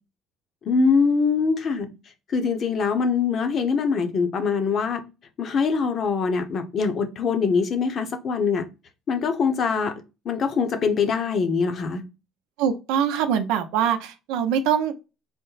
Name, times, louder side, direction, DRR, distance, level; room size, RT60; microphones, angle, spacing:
voice 1, 0.6-1.9 2.3-5.0 5.4-8.6 9.1-9.9 10.2-12.0, left 5 dB, 40° left, 0.8 m, -23 dB
voice 2, 12.6-14.9, right 8 dB, 90° right, 0.6 m, -23 dB
4.2 x 2.1 x 3.9 m
cardioid pair, 130°, 0 cm